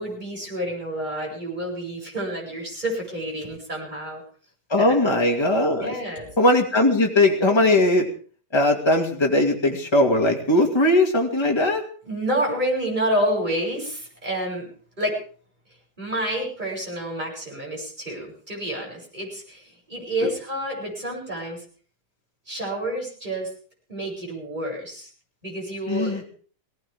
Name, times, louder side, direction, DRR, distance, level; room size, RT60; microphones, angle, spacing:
voice 1, 0.0-4.2 4.8-5.0 5.8-6.3 12.1-14.7 15.0-15.2 16.0-21.6 22.5-23.5 23.9-25.1 25.4-26.3, right 1 dB, 25° right, -2 dB, 8.3 m, -29 dB
voice 2, 4.7-5.9 6.4-8.1 8.5-11.8 20.2-20.3 25.9-26.2, left 1 dB, 15° left, 1 dB, 2.5 m, -19 dB
20.0 x 18.5 x 3.7 m, 0.44 s
omnidirectional pair, 1.8 m